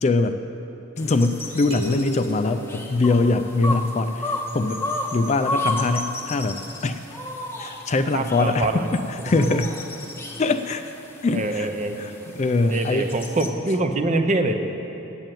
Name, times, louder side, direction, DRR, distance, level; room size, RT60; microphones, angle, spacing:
voice 1, 0.0-0.4 1.0-4.8 5.1-7.0 7.6-9.7 10.4-10.9 11.2-11.7 12.0-13.1, left 3 dB, 35° left, 9 dB, 0.3 m, -23 dB
sound 1, 1.0-13.5, left 2 dB, 10° left, 0.8 m, -33 dB
sound 2, 1.7-3.6, right 2 dB, 75° right, 1.0 m, -35 dB
voice 2, 8.1-8.9 11.3-12.0 12.7-14.6, right 2 dB, 35° right, 6 dB, 0.6 m, -24 dB
9.0 x 7.8 x 9.0 m, 2.9 s
head